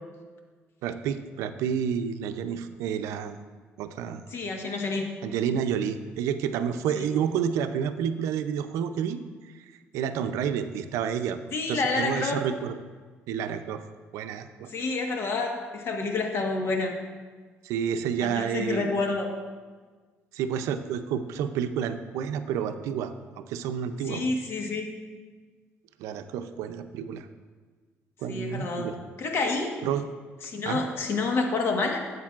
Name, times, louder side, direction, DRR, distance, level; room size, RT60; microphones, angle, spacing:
voice 1, 0.8-3.4 3.8-4.2 5.2-9.2 9.9-11.4 11.7-12.8 13.3-13.8 14.1-14.7 17.6-18.9 20.3-23.1 23.5-24.3 26.0-27.3 28.2-29.0 29.8-30.0 30.7-30.8, right 8 dB, 85° right, 9 dB, 0.5 m, -29 dB
voice 2, 4.3-5.1 6.9-7.1 11.5-12.4 14.7-16.9 18.2-19.3 24.0-24.9 28.3-29.8 30.4-32.0, left 3 dB, 55° left, 3 dB, 1.3 m, -28 dB
11.5 x 8.0 x 2.4 m, 1.5 s
cardioid pair, 90°, 5 cm